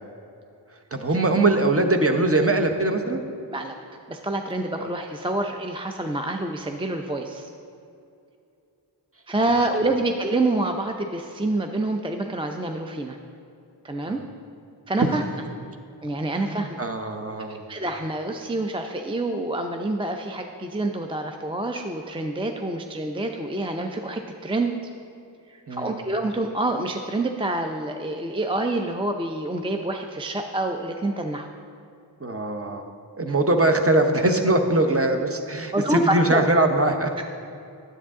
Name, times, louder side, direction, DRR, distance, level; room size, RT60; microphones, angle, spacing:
voice 1, 0.9-3.2 4.8-4.9 14.0-14.2 15.0-15.1 16.4-17.6 25.7-26.0 32.2-32.9 33.2-37.1, right 2 dB, 30° right, 4 dB, 0.8 m, -22 dB
voice 2, 4.1-7.5 9.3-13.2 13.8-14.2 14.9-15.2 16.0-16.8 17.5-24.8 25.5-31.5 35.7-36.4 37.2-37.3, right 2 dB, 15° right, 4 dB, 0.4 m, -27 dB
9.9 x 8.0 x 3.7 m, 2.6 s
wide cardioid pair, 45°, 43 cm